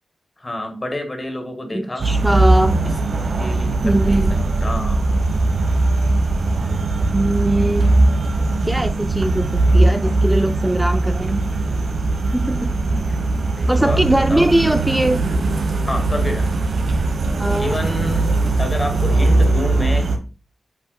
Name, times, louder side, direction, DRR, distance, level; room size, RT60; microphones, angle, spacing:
voice 1, 0.4-2.1 3.4-5.1 7.6-7.9 12.9-13.2 13.6-14.0 14.3-14.5 15.9-16.7 17.6-20.1, left 1 dB, 20° left, 5 dB, 1.6 m, -29 dB
voice 2, 1.7-2.8 3.8-4.4 7.1-7.9 8.6-11.5 12.3-12.7 13.7-15.2 17.4-17.7, right 1 dB, 10° right, 8 dB, 0.4 m, -20 dB
sound 1, 2.0-20.2, right 2 dB, 70° right, 1.1 m, -19 dB
8.3 x 5.4 x 2.3 m, 0.35 s
wide cardioid pair, 150°, 0 cm